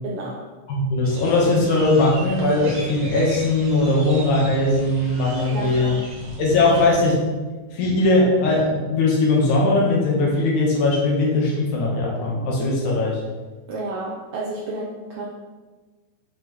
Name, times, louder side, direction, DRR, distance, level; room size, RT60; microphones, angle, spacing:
voice 1, 0.0-0.5 5.5-6.0 13.7-15.3, right 2 dB, 75° right, -3 dB, 1.3 m, -31 dB
voice 2, 0.7-6.0 6.4-7.2 7.7-13.2, left 2 dB, 85° left, -3 dB, 2.7 m, -19 dB
sound 1, 1.0-7.1, right 1 dB, 50° right, 1.9 m, -37 dB
7.6 x 5.7 x 3.1 m, 1.3 s
omnidirectional pair, 3.4 m